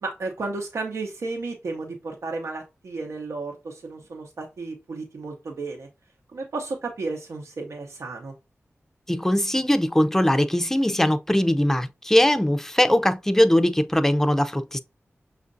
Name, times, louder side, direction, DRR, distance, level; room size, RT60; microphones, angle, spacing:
voice 1, 0.0-5.9 6.3-8.3, right 3 dB, 90° right, 0.8 m, -33 dB
voice 2, 9.1-14.8, equal, 10° left, 0.4 m, -21 dB
6.3 x 2.5 x 2.6 m
wide cardioid pair, 85°, 5 cm